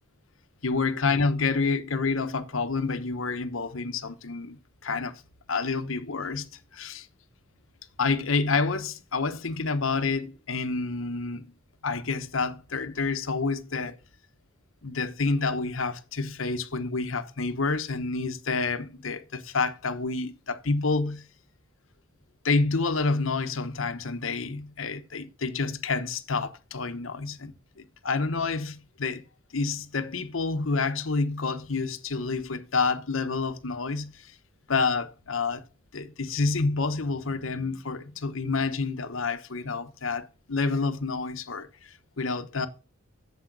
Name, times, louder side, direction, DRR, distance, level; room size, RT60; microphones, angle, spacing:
voice 1, 0.6-5.2 5.5-7.1 8.0-11.5 11.8-14.0 14.8-21.3 22.4-29.2 29.5-34.3 34.7-35.6 35.9-42.7, left 4 dB, 85° left, 1.0 m, -28 dB
7.9 x 7.5 x 6.0 m
head